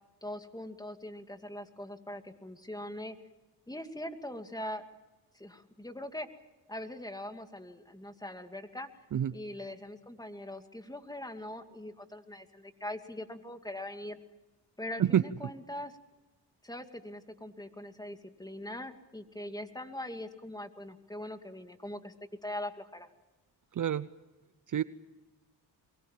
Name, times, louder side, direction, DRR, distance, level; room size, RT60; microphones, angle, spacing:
voice 1, 0.2-3.2 3.7-4.8 5.3-6.3 6.7-8.9 9.3-14.2 14.8-16.0 16.6-22.1 22.4-23.1, left 1 dB, 10° left, 7 dB, 2.5 m, -42 dB
voice 2, 23.7-24.1 24.7-24.8, right 10 dB, 45° right, 16 dB, 0.8 m, -27 dB
24.0 x 22.5 x 7.5 m, 1.1 s
cardioid pair, 65°, 42 cm